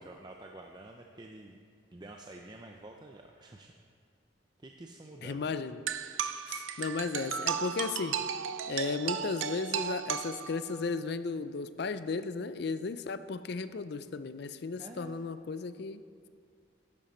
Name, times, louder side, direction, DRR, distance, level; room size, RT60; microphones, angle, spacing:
voice 1, 0.0-1.6 1.9-3.7 4.6-5.6 14.8-15.2, right 2 dB, 20° right, 2 dB, 0.4 m, -49 dB
voice 2, 5.2-5.8 6.5-8.2 8.7-16.0, left 4 dB, 55° left, 13 dB, 0.4 m, -35 dB
sound 1, 5.9-10.9, right 8 dB, 80° right, 0.5 m, -35 dB
11.0 x 10.5 x 4.3 m, 2.2 s
head